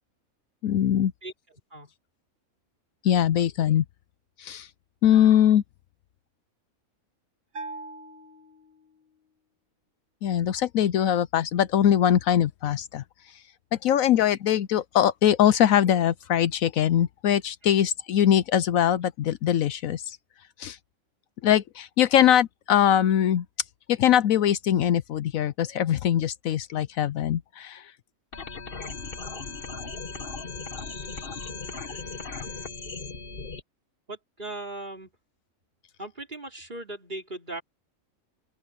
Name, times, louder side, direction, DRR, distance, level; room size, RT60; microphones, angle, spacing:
voice 1, 0.6-1.1 3.0-3.8 4.4-4.7 5.0-5.6 10.2-13.0 13.7-20.2 20.6-20.8 21.4-23.5 23.9-27.9, left 10 dB, 70° left, 1.0 m, -22 dB
Bell, 7.5-9.2, right 3 dB, 65° right, 2.8 m, -41 dB
sound 1, 28.3-33.6, left 4 dB, 40° left, 1.6 m, -37 dB
voice 2, 34.1-35.1 36.0-37.6, right 2 dB, 35° right, 4.4 m, -38 dB
open air
omnidirectional pair, 1.5 m